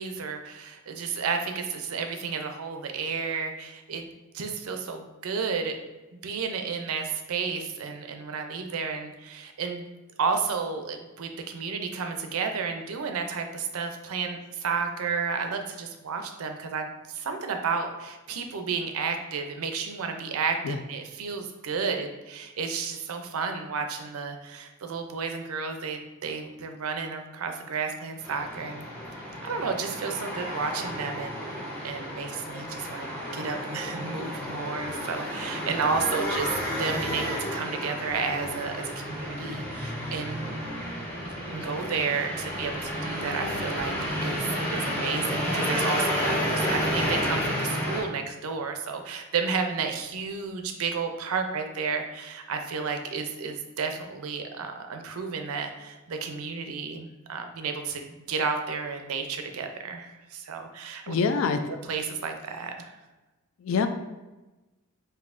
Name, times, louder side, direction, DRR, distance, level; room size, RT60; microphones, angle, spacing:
voice 1, 0.0-4.1 4.3-5.8 6.1-9.9 10.2-28.9 29.4-31.6 31.8-40.4 41.2-61.2 61.8-62.9, right 5 dB, 80° right, 5 dB, 0.5 m, -32 dB
sound 1, 28.2-48.0, equal, 10° left, 0.7 m, -31 dB
voice 2, 61.1-61.7 63.6-63.9, left 5 dB, 65° left, 8 dB, 0.3 m, -25 dB
5.3 x 2.7 x 2.5 m, 1.1 s
head